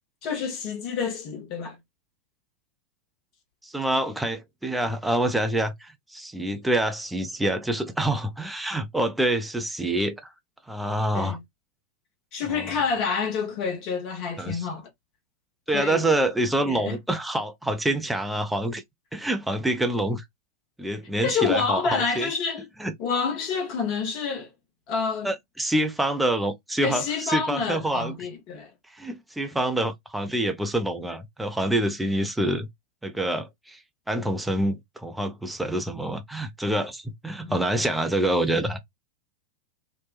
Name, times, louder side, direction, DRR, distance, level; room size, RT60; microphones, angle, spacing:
voice 1, 0.2-1.8 11.1-11.4 12.3-14.9 15.7-16.1 16.7-17.0 21.2-22.7 23.0-24.5 24.9-25.3 26.8-28.7 37.4-37.6, left 5 dB, 40° left, 0.9 m, -28 dB
voice 2, 3.6-10.3 10.7-11.4 12.5-12.7 14.4-14.7 15.7-18.8 19.1-20.2 20.8-22.3 22.8-22.9 25.2-28.1 28.9-32.7 33.0-33.8 34.1-38.8, right 1 dB, 5° right, 0.5 m, -26 dB
2.8 x 2.2 x 2.2 m
figure-of-eight pair, 90°, 0 cm